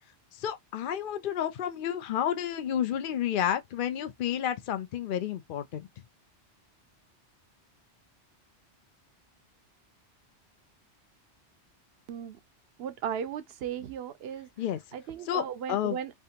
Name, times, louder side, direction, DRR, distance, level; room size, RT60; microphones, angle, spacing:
voice 1, 0.3-5.9 14.6-14.8 15.2-16.0, left 10 dB, 60° left, 0.6 m, -31 dB
voice 2, 12.8-14.5 14.9-16.1, right 8 dB, 65° right, 0.8 m, -36 dB
3.4 x 2.5 x 2.8 m
omnidirectional pair, 1.2 m